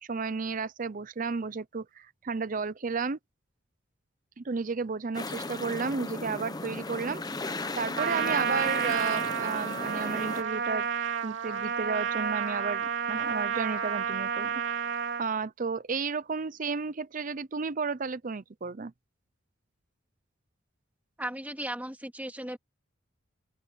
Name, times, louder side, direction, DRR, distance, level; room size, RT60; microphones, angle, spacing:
voice 1, 0.0-3.2 4.4-7.2 7.8-10.9 11.2-14.5 15.2-18.9, right 4 dB, 40° right, 0.6 m, -33 dB
sound 1, 5.1-10.4, left 2 dB, 20° left, 0.9 m, -36 dB
Trumpet, 8.0-15.3, right 7 dB, 65° right, 3.0 m, -30 dB
voice 2, 21.2-22.6, right 1 dB, 10° right, 2.4 m, -36 dB
open air
head